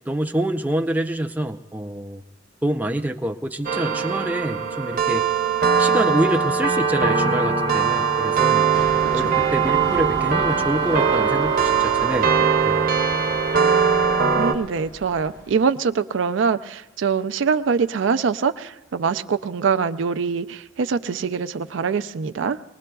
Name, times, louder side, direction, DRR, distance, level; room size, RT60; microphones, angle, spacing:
voice 1, 0.1-2.2 2.6-5.2 5.8-8.7 9.1-12.9, right 1 dB, 10° right, 3 dB, 0.4 m, -26 dB
sound 1, 3.6-14.5, right 6 dB, 50° right, 0.8 m, -20 dB
sound 2, 8.7-15.6, left 1 dB, 45° left, 1.4 m, -38 dB
voice 2, 14.4-22.6, right 5 dB, 75° right, 11 dB, 0.4 m, -24 dB
24.0 x 19.5 x 2.3 m, 1.0 s
head